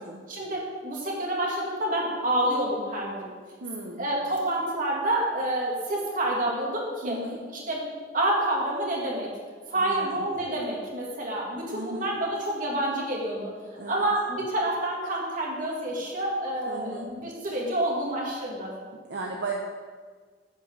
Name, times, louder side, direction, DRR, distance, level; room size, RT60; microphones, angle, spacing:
voice 1, 0.3-3.1 4.0-7.2 7.7-7.8 8.1-9.3 9.7-13.5 13.9-18.7, right 1 dB, 50° right, -3 dB, 2.8 m, -28 dB
voice 2, 3.6-4.1 7.0-7.4 9.7-10.2 11.7-12.1 13.8-14.1 16.7-17.1 19.1-19.5, right 2 dB, 75° right, -1 dB, 1.0 m, -36 dB
10.5 x 5.3 x 7.9 m, 1.5 s
head